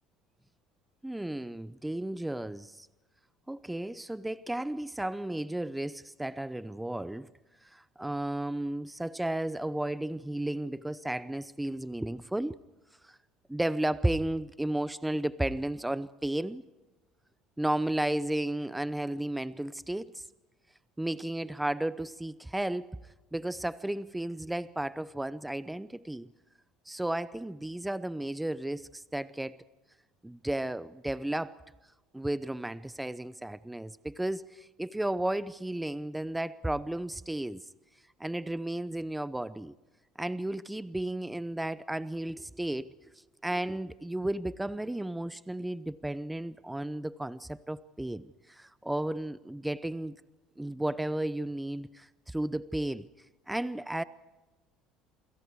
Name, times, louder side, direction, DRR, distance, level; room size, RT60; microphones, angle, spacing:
voice 1, 1.0-2.9 3.5-7.3 7.6-12.6 13.0-13.2 13.5-16.6 17.6-20.2 21.0-22.9 23.3-26.3 26.9-29.6 30.2-31.6 32.1-37.6 38.2-39.7 40.2-42.9 43.1-50.2 50.6-53.1 53.5-54.0, right 1 dB, 5° right, 0.7 m, -33 dB
28.5 x 25.5 x 4.7 m
supercardioid pair, 105°, 0 cm